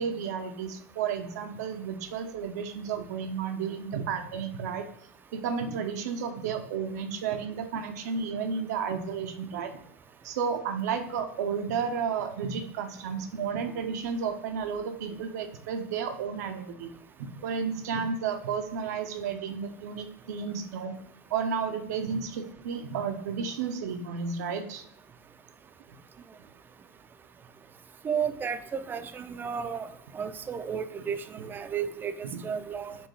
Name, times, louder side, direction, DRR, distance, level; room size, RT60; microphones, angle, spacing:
voice 1, 0.0-4.9 5.3-9.8 10.2-16.9 17.2-21.0 21.3-24.8 32.2-32.4, right 6 dB, 80° right, 7 dB, 0.6 m, -32 dB
voice 2, 28.0-29.9 30.1-33.0, right 7 dB, 20° right, 11 dB, 0.4 m, -33 dB
4.3 x 2.7 x 3.1 m, 0.75 s
hypercardioid pair, 100°, 9 cm